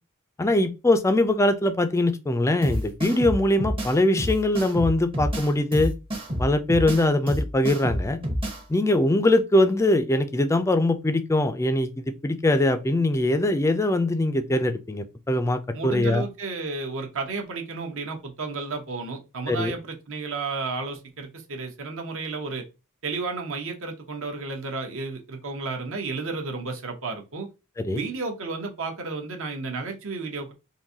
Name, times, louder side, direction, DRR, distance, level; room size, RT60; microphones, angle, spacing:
voice 1, 0.4-5.9 6.4-8.2 8.7-16.2 19.5-19.7 27.9-28.0, left 1 dB, 15° left, 0.3 m, -22 dB
sound 1, 2.6-8.6, equal, 25° right, 0.7 m, -29 dB
voice 2, 15.7-22.7 23.0-27.5 27.9-30.5, right 3 dB, 65° right, 0.9 m, -32 dB
3.7 x 2.6 x 2.7 m
head